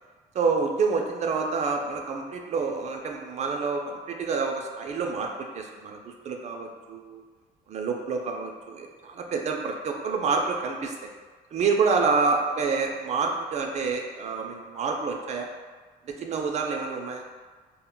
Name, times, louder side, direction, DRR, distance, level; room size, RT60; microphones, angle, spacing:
voice 1, 0.3-7.2 7.7-11.1 11.5-15.5 16.1-17.2, right 4 dB, 40° right, 2 dB, 0.4 m, -28 dB
2.1 x 2.1 x 3.7 m, 1.4 s
cardioid pair, 110°, 17 cm